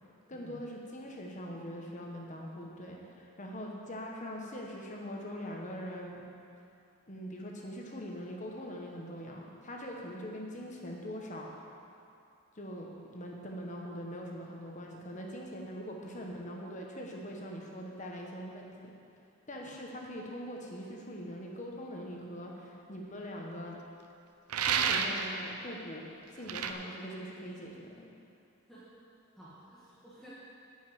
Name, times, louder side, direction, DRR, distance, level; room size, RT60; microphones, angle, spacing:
voice 1, 0.3-6.2 7.1-11.7 12.5-18.9 19.5-23.8 24.6-28.1, equal, 35° left, -1 dB, 1.2 m, -42 dB
sound 1, 24.5-25.3 26.5-26.7, right 6 dB, 85° right, 0.6 m, -29 dB
voice 2, 29.3-30.3, equal, ahead, -10 dB, 1.4 m, -54 dB
9.9 x 5.6 x 7.8 m, 2.6 s
head